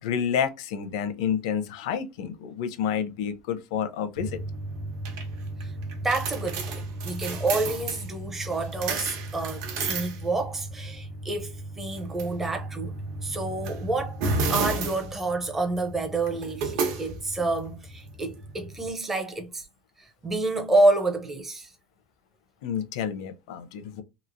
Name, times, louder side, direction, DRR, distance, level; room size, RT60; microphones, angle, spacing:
voice 1, 0.0-4.4 22.6-24.0, left 8 dB, 80° left, 0.6 m, -29 dB
sound 1, 4.2-18.9, right 3 dB, 65° right, 0.9 m, -33 dB
voice 2, 6.0-13.0 13.2-14.2 14.5-19.7 20.0-21.7, right 2 dB, 10° right, 0.5 m, -28 dB
3.0 x 2.8 x 2.5 m
cardioid pair, 180°, 3 cm